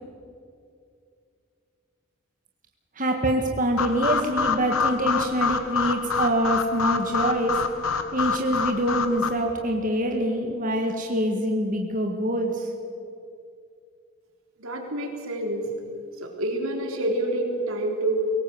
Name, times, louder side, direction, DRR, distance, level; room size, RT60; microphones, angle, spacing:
voice 1, 3.0-7.6 8.1-12.7, right 1 dB, 40° right, 2 dB, 1.9 m, -25 dB
sound 1, 3.8-9.3, left 5 dB, 85° left, 1.5 m, -27 dB
voice 2, 14.6-15.8 16.2-18.3, right 1 dB, 85° right, 2 dB, 3.8 m, -27 dB
23.0 x 18.0 x 7.9 m, 2.4 s
head